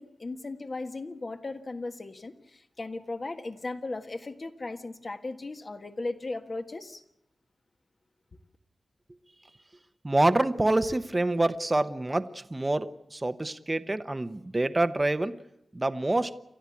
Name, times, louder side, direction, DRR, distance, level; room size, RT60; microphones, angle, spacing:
voice 1, 0.0-7.0, left 2 dB, 45° left, 6 dB, 1.5 m, -37 dB
voice 2, 10.0-15.3 15.7-16.3, right 2 dB, 25° right, 10 dB, 0.9 m, -26 dB
30.0 x 13.0 x 8.5 m, 0.85 s
wide cardioid pair, 90°, 0 cm